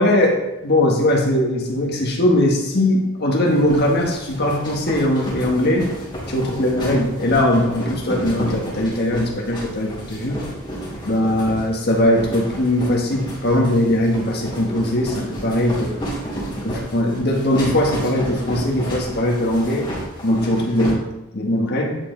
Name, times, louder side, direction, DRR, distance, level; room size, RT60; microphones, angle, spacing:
voice 1, 0.0-5.9 6.3-10.4 11.0-16.0 16.6-19.9 20.2-21.0 21.3-22.0, left 1 dB, 55° left, 0 dB, 1.6 m, -20 dB
sound 1, 3.5-20.9, equal, 25° left, 2.7 m, -31 dB
9.7 x 5.1 x 3.9 m, 0.95 s
head